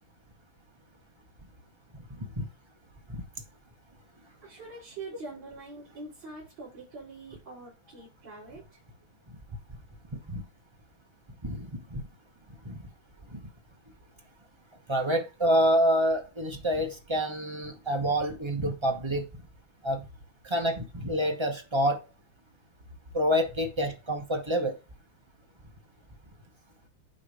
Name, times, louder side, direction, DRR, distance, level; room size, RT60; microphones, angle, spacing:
voice 1, 4.4-8.8, right 3 dB, 50° right, 4.7 m, -44 dB
voice 2, 11.4-12.0 12.6-12.8 13.3-13.4 14.9-19.2 19.8-20.0 20.4-22.0 23.1-24.7, equal, 30° right, 0.5 m, -27 dB
9.5 x 3.2 x 5.0 m
omnidirectional pair, 2.4 m